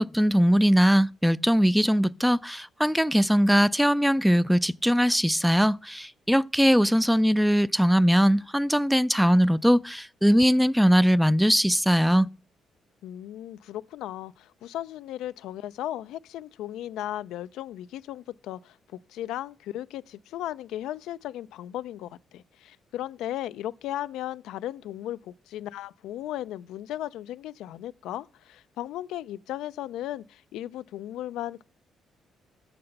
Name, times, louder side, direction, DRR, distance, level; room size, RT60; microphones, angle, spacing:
voice 1, 0.0-12.3, equal, ahead, 0.3 m, -21 dB
voice 2, 13.0-31.6, left 13 dB, 85° left, 0.3 m, -36 dB
6.7 x 5.8 x 6.5 m
cardioid pair, 90°, 0 cm